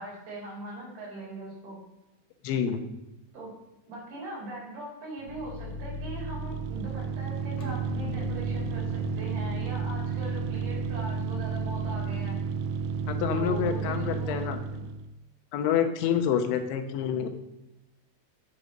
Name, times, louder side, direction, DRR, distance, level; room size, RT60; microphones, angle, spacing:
voice 1, 0.0-1.8 3.3-3.5 3.9-12.4 13.3-14.4 14.7-14.8, right 2 dB, 55° right, -4 dB, 6.1 m, -40 dB
voice 2, 2.4-2.8 13.1-14.6 15.5-17.3, left 8 dB, 85° left, 7 dB, 3.3 m, -27 dB
sound 1, 5.2-15.1, right 5 dB, 85° right, 2.9 m, -32 dB
sound 2, 5.3-12.0, left 3 dB, 65° left, 2.9 m, -40 dB
10.5 x 6.3 x 6.4 m, 0.95 s
omnidirectional pair, 5.3 m